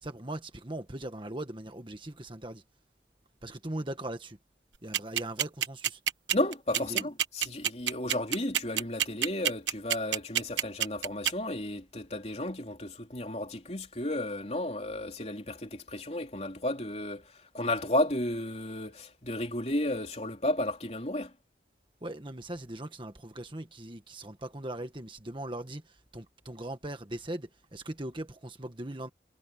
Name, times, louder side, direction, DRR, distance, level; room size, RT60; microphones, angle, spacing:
voice 1, 0.0-2.6 3.4-4.4 4.8-6.0 6.8-7.1 22.0-29.1, right 1 dB, 30° right, 1.5 m, -39 dB
sound 1, 4.9-11.3, right 10 dB, 90° right, 1.2 m, -27 dB
voice 2, 6.3-21.3, left 1 dB, 35° left, 3.6 m, -33 dB
head